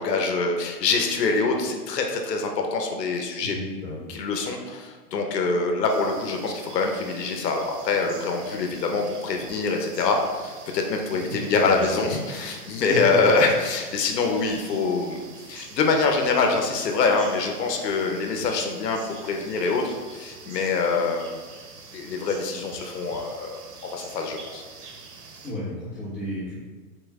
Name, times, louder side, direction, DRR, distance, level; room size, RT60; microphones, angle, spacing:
voice 1, 0.0-3.6 4.1-21.4 21.9-23.6 23.9-24.6, left 4 dB, 85° left, 3 dB, 0.9 m, -25 dB
voice 2, 3.4-4.1 11.4-12.0 12.9-13.0 25.4-26.6, equal, 15° left, -9 dB, 1.4 m, -33 dB
sound 1, 5.9-25.5, right 4 dB, 75° right, 0.9 m, -45 dB
4.3 x 3.1 x 3.5 m, 1.4 s
hypercardioid pair, 160°, 48 cm